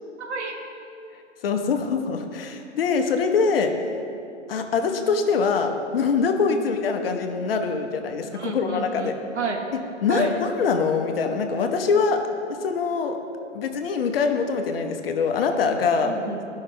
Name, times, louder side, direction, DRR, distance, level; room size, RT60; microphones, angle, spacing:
voice 1, 0.2-0.6 6.5-6.7 8.3-9.6 10.1-10.4 16.0-16.4, right 4 dB, 70° right, 2 dB, 1.3 m, -31 dB
voice 2, 1.4-3.9 4.5-9.1 10.0-12.2 12.6-13.2 13.5-16.1, left 5 dB, 50° left, 5 dB, 0.9 m, -23 dB
12.5 x 5.6 x 3.3 m, 2.6 s
figure-of-eight pair, 125°, 36 cm